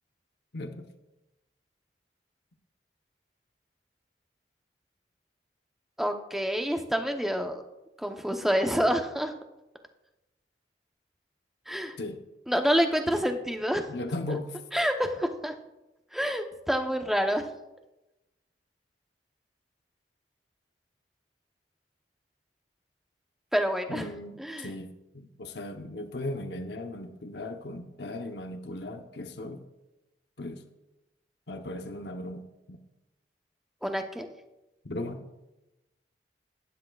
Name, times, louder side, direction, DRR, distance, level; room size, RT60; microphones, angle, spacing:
voice 1, 0.5-0.9 12.0-12.2 13.9-14.6 23.9-29.6 30.4-30.6 31.5-32.8 34.8-35.3, left 2 dB, 70° left, 6 dB, 0.9 m, -37 dB
voice 2, 6.0-7.6 8.0-9.3 11.7-12.0 12.5-13.9 14.7-15.5 16.1-17.4 23.5-24.1 24.4-24.7 33.8-34.3, equal, ahead, 4 dB, 0.8 m, -27 dB
18.0 x 10.5 x 2.3 m, 0.99 s
head